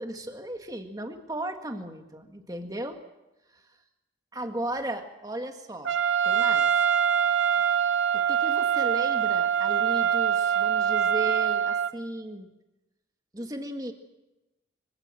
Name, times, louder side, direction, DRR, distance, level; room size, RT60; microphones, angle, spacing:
voice 1, 0.0-3.0 4.3-6.0 6.2-6.7 8.1-12.5 13.3-13.9, right 1 dB, 20° right, 5 dB, 1.8 m, -35 dB
Trumpet, 5.9-11.9, right 8 dB, 90° right, 1.0 m, -24 dB
25.0 x 16.0 x 7.6 m, 1.0 s
head